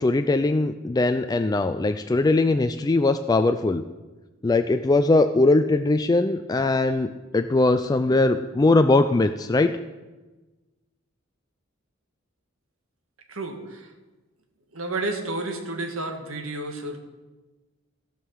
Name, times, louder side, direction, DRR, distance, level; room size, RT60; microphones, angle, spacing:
voice 1, 0.0-3.8 4.4-7.1 7.3-9.8, left 2 dB, 20° left, 8 dB, 0.3 m, -20 dB
voice 2, 13.3-13.9 14.7-17.0, right 2 dB, 85° right, 4 dB, 1.6 m, -31 dB
16.0 x 5.6 x 6.3 m, 1.2 s
head